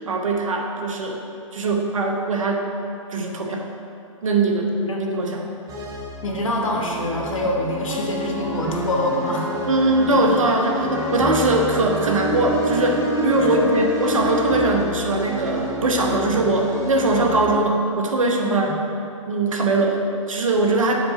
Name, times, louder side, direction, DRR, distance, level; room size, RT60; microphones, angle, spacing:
voice 1, 0.1-1.2 1.5-2.7 3.1-3.7 4.2-5.5 9.7-18.7 19.3-21.0, right 2 dB, 80° right, 2 dB, 0.9 m, -21 dB
sound 1, 5.7-17.6, right 1 dB, 20° right, 1.0 m, -27 dB
voice 2, 6.2-9.7 13.4-13.6 18.4-18.7, left 1 dB, 80° left, 0 dB, 1.2 m, -25 dB
7.0 x 3.9 x 4.9 m, 2.8 s
hypercardioid pair, 125°, 17 cm